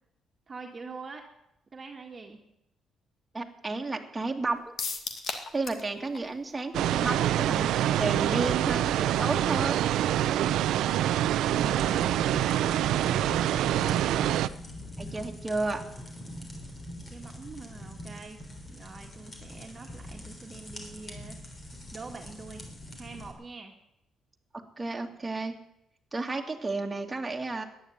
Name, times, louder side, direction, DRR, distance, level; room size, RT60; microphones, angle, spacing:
voice 1, 0.5-1.3 1.7-2.4 11.4-12.3 12.8-13.4 13.9-14.4 17.1-18.4 18.7-21.4 21.9-22.7 23.0-23.7, right 4 dB, 35° right, 2 dB, 1.8 m, -44 dB
voice 2, 3.3-4.7 5.5-9.8 15.0-15.8 24.5-25.5 26.1-27.6, right 3 dB, 15° right, 2 dB, 2.2 m, -32 dB
sound 1, 4.8-5.9 6.2-6.3 6.6-6.7, left 4 dB, 55° left, 2.1 m, -34 dB
sound 2, 6.7-14.5, right 12 dB, 85° right, 0.6 m, -26 dB
sound 3, 11.5-23.3, left 1 dB, 30° left, 3.5 m, -43 dB
14.5 x 10.5 x 9.4 m, 0.85 s
cardioid pair, 90°, 0 cm